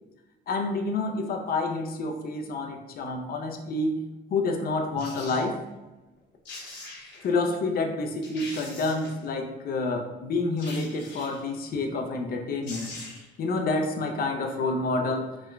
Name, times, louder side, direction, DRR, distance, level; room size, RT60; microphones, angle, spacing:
voice 1, 0.5-5.6 7.2-12.9 13.4-15.5, left 3 dB, 50° left, 3 dB, 0.4 m, -28 dB
sound 1, 5.0-5.4 6.2-6.3 6.4-7.3 7.8-7.9 8.2-9.3 10.6-11.5 12.3-12.4 12.6-13.4 13.7-13.8, left 2 dB, 70° left, 0.9 m, -42 dB
2.9 x 2.1 x 2.3 m, 1.1 s
cardioid pair, 90°, 20 cm